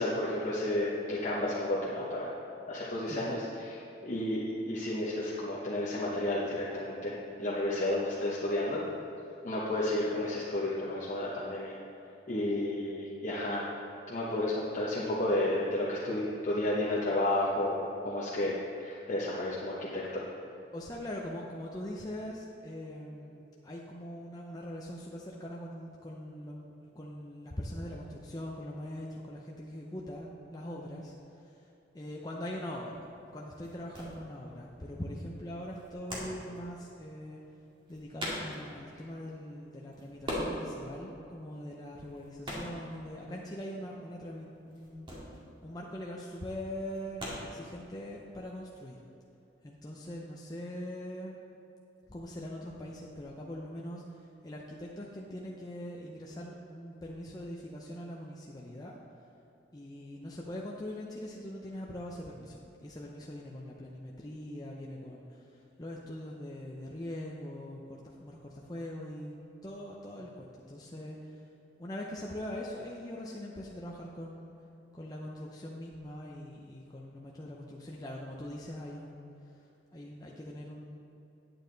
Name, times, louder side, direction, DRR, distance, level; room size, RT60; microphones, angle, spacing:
voice 1, 0.0-2.3 2.7-8.8 9.4-11.7 12.3-13.7 14.1-20.2, left 1 dB, 40° left, -6 dB, 1.1 m, -32 dB
voice 2, 20.7-31.1 31.4-31.5 31.9-37.4 37.9-45.1 45.6-49.0 49.6-51.3 52.1-54.0 54.4-59.0 59.7-71.3 71.8-74.5 74.9-79.3 79.9-81.0, left 1 dB, 20° left, -3 dB, 0.6 m, -42 dB
sound 1, 32.2-48.4, equal, 25° right, 2.0 m, -42 dB
9.4 x 8.8 x 3.9 m, 2.9 s
head